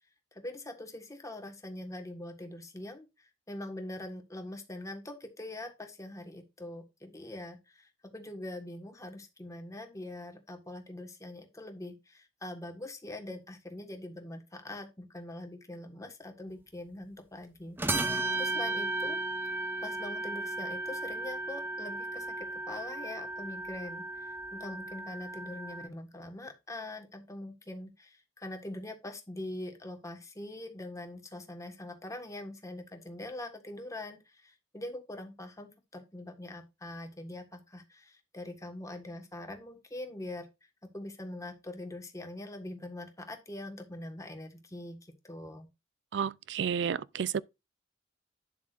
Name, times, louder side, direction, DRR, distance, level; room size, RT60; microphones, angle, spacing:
voice 1, 0.3-19.2 19.8-40.7 40.9-45.7, left 1 dB, 15° left, 1.5 m, -43 dB
sound 1, 17.8-25.9, right 2 dB, 10° right, 0.6 m, -35 dB
voice 2, 46.1-47.4, right 7 dB, 70° right, 0.4 m, -31 dB
9.6 x 7.3 x 2.5 m
head